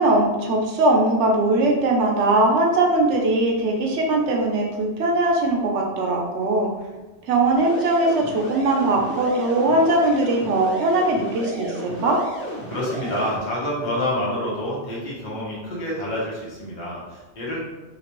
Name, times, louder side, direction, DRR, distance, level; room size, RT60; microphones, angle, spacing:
voice 1, 0.0-6.7 7.3-12.2, right 2 dB, 80° right, 0 dB, 1.0 m, -20 dB
sound 1, 7.5-13.4, equal, 10° left, 0.9 m, -33 dB
voice 2, 12.7-17.6, left 1 dB, 45° left, -5 dB, 0.9 m, -27 dB
3.2 x 2.9 x 3.0 m, 1.1 s
omnidirectional pair, 1.2 m